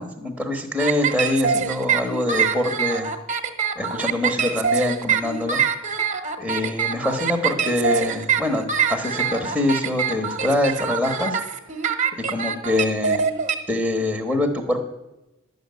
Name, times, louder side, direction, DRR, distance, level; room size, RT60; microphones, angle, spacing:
voice 1, 0.0-3.1 3.8-5.6 6.4-11.4 12.3-13.3 13.7-14.8, left 1 dB, ahead, 1 dB, 1.2 m, -24 dB
sound 1, 0.8-13.5, right 7 dB, 35° right, 1.1 m, -24 dB
11.0 x 6.6 x 9.4 m, 1.0 s
head